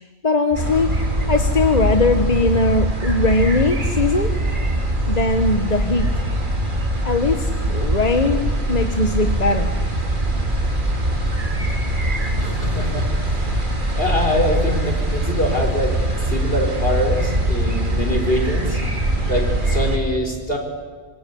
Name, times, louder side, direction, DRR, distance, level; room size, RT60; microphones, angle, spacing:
voice 1, 0.2-0.9 1.3-4.3 5.1-6.2 7.0-9.7, left 3 dB, 40° left, 6 dB, 1.4 m, -20 dB
sound 1, 0.5-20.0, right 1 dB, 50° right, 3.0 m, -22 dB
voice 2, 12.4-13.4 14.0-18.8 19.3-20.6, left 1 dB, 60° left, 3 dB, 5.0 m, -24 dB
26.5 x 24.5 x 8.6 m, 1.4 s
omnidirectional pair, 1.1 m